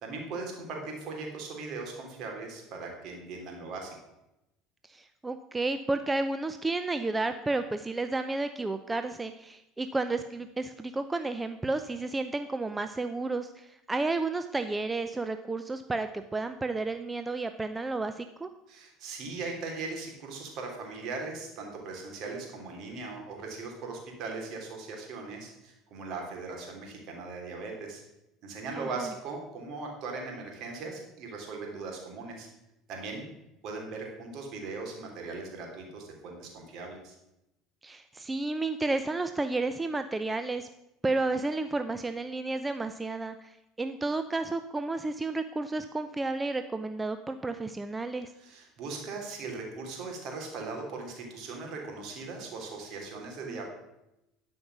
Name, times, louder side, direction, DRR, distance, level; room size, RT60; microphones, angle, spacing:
voice 1, 0.0-3.9 18.7-28.0 28.4-32.5 32.9-33.3 33.6-37.2 48.4-53.7, right 3 dB, 60° right, 1 dB, 3.2 m, -39 dB
voice 2, 4.9-18.5 28.8-29.1 37.8-40.7 41.0-48.3 53.5-53.6, right 3 dB, 15° right, 9 dB, 0.5 m, -32 dB
12.0 x 5.4 x 6.0 m, 0.91 s
hypercardioid pair, 80°, 0 cm